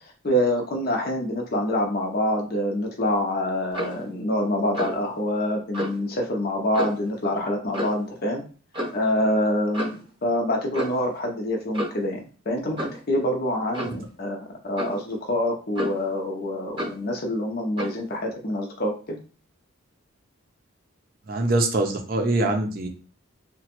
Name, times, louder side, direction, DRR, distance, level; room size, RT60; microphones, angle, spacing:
voice 1, 0.2-8.4 8.9-12.2 12.5-19.2, left 1 dB, 45° left, 1 dB, 0.6 m, -26 dB
Clock, 3.7-4.0 4.7-5.0 5.7-6.0 6.7-7.1 7.7-8.0 8.7-9.0 9.7-10.1 10.7-11.1 11.7-12.1 12.8-13.0 13.7-14.0 14.8-15.0 15.7-16.1 16.8-17.0 17.8-18.0, equal, 25° right, 0.9 m, -31 dB
voice 2, 21.3-22.9, right 2 dB, 45° right, 3 dB, 0.5 m, -23 dB
2.9 x 2.2 x 2.9 m, 0.37 s
head